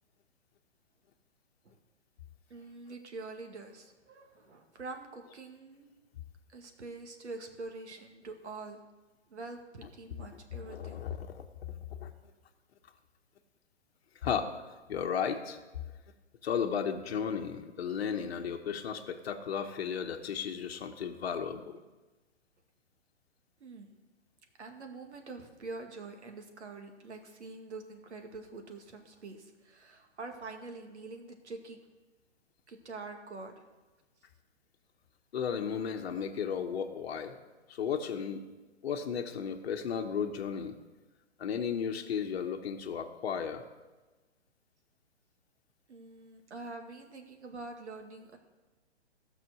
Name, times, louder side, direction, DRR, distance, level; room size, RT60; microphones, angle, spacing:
voice 1, 2.5-5.9 6.5-8.8 9.3-11.0 23.6-23.9 24.6-31.8 32.7-33.7 45.9-48.4, right 3 dB, 70° right, 4 dB, 2.1 m, -45 dB
voice 2, 10.7-11.4 12.0-12.1 14.2-14.6 14.9-15.6 16.4-21.8 35.3-37.4 37.7-38.4 38.8-40.7 41.4-43.6, left 7 dB, 60° left, 4 dB, 1.1 m, -34 dB
15.0 x 6.1 x 6.2 m, 1.2 s
figure-of-eight pair, 130°, 36 cm